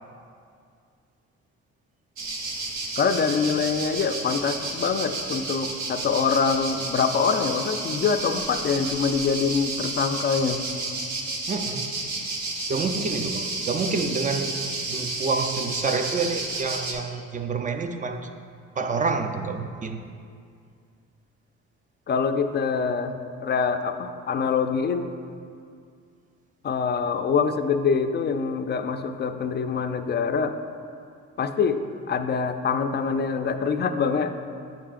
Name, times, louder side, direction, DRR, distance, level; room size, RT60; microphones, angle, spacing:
sound 1, 2.2-16.9, right 3 dB, 70° right, 1.0 m, -31 dB
voice 1, 3.0-10.6 22.1-25.1 26.6-30.6 31.4-31.8 32.1-34.4, left 5 dB, 35° left, 8 dB, 0.4 m, -25 dB
voice 2, 11.5-11.9 12.7-14.5 14.9-18.2 18.8-20.0, right 4 dB, 25° right, 6 dB, 0.5 m, -28 dB
9.2 x 5.7 x 2.4 m, 2.3 s
cardioid pair, 90°, 30 cm